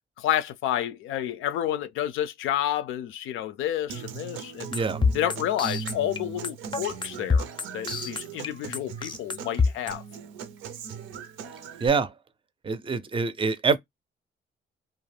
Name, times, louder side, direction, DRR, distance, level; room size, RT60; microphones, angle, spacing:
voice 1, 0.2-4.7 5.1-7.5 7.7-10.0, left 11 dB, 80° left, 0.4 m, -30 dB
Human voice / Acoustic guitar, 3.9-11.9, right 7 dB, 85° right, 0.6 m, -39 dB
sound 1, 4.7-9.9, left 4 dB, 25° left, 0.5 m, -25 dB
voice 2, 4.7-5.0 11.8-12.1 12.6-13.8, right 5 dB, 25° right, 0.5 m, -25 dB
2.4 x 2.1 x 3.2 m
cardioid pair, 90°, 20 cm